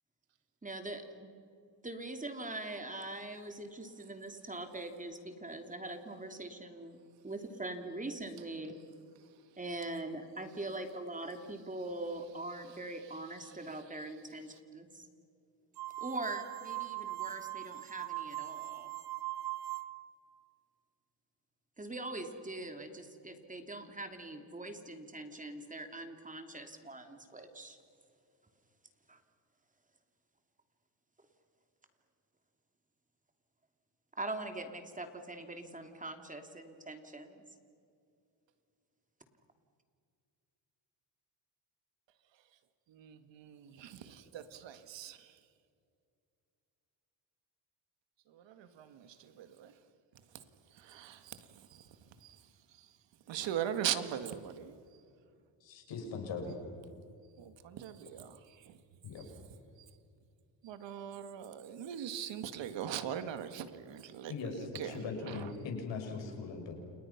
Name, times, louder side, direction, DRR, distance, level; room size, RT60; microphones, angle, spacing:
voice 1, 0.6-1.3 1.8-7.0 7.2-8.8 9.6-15.0 16.0-18.9 21.8-27.8 29.1-29.2 34.2-37.4, right 2 dB, 15° right, 6 dB, 2.9 m, -42 dB
sound 1, 15.8-20.2, right 17 dB, 60° right, 1.1 m, -40 dB
voice 2, 42.9-45.4 48.3-49.7 50.7-52.9 53.3-54.8 57.4-58.8 59.2-59.3 60.6-65.5, right 9 dB, 75° right, 10 dB, 2.0 m, -41 dB
voice 3, 55.6-56.6 59.0-59.2 64.3-66.7, left 4 dB, 75° left, 3 dB, 6.7 m, -40 dB
30.0 x 29.5 x 6.0 m, 2.4 s
cardioid pair, 105°, 44 cm